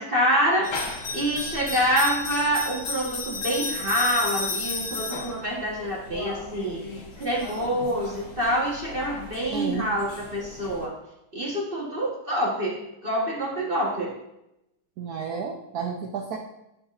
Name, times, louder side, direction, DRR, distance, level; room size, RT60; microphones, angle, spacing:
voice 1, 0.0-6.8 7.2-10.9 11.3-12.8 13.0-14.1, equal, 35° right, -4 dB, 1.0 m, -26 dB
sound 1, 0.6-10.9, left 3 dB, 50° left, 1.0 m, -34 dB
voice 2, 9.5-9.9 15.0-16.4, right 6 dB, 85° right, 2 dB, 0.8 m, -31 dB
9.1 x 5.1 x 2.4 m, 0.85 s
omnidirectional pair, 2.4 m